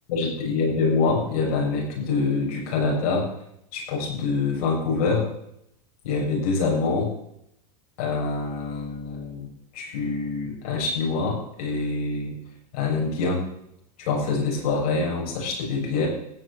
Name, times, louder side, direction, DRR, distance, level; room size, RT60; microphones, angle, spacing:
voice 1, 0.1-3.3 3.7-5.3 6.0-7.1 8.0-12.3 12.7-13.4 14.0-16.1, left 4 dB, 70° left, -2 dB, 6.9 m, -25 dB
16.5 x 6.7 x 8.2 m, 0.76 s
supercardioid pair, 135°, 20 cm